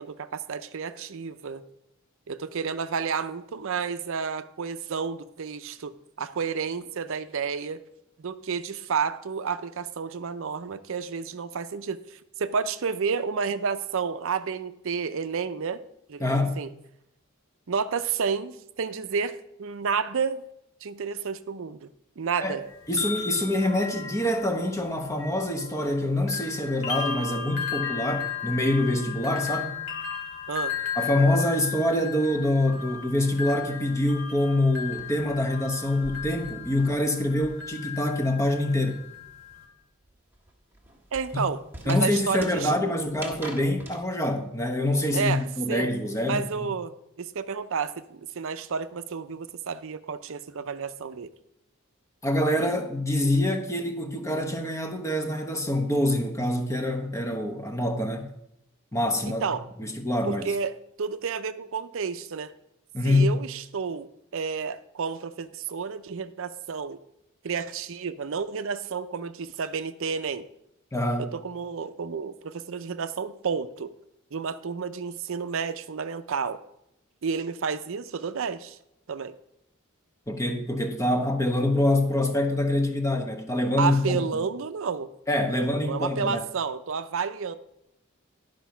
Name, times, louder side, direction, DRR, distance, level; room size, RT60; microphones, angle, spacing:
voice 1, 0.0-1.6 2.3-7.8 8.2-15.8 16.1-16.7 17.7-20.4 20.8-21.9 22.2-22.6 30.5-30.8 41.1-42.7 45.1-45.9 46.2-51.3 59.2-59.6 60.3-62.5 63.0-67.0 67.4-70.5 71.2-73.9 74.3-76.6 77.2-78.8 79.1-79.4 83.8-85.1 85.6-87.5, right 5 dB, 65° right, 0.5 m, -31 dB
voice 2, 16.2-16.6 22.4-22.6 22.9-29.8 31.0-39.0 41.3-41.4 41.9-46.4 52.2-58.3 58.9-59.4 59.8-60.4 62.9-63.3 70.9-71.3 80.3-84.2 85.3-86.4, left 1 dB, 15° left, 0.9 m, -25 dB
sound 1, 22.7-26.0 26.3-39.6, left 8 dB, 65° left, 2.4 m, -35 dB
sound 2, 34.1-37.9 38.2-44.0, right 1 dB, 10° right, 1.4 m, -45 dB
11.0 x 5.2 x 5.7 m
head